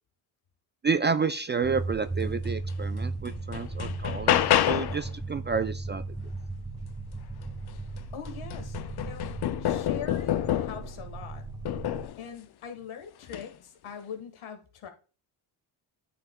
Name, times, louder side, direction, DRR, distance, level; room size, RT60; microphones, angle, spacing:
voice 1, 0.8-6.0, right 5 dB, 25° right, 11 dB, 0.3 m, -30 dB
sound 1, 1.6-12.1, right 3 dB, 5° right, 0.9 m, -36 dB
sound 2, 2.7-2.8 3.3-5.1 7.4-7.5 8.0-10.9 11.7-12.2 13.2-13.5, left 12 dB, 50° left, 0.6 m, -28 dB
voice 2, 8.1-9.3 9.6-11.4 12.2-14.9, left 7 dB, 75° left, 7 dB, 1.6 m, -42 dB
9.1 x 5.8 x 2.2 m, 0.36 s
cardioid pair, 65°, 50 cm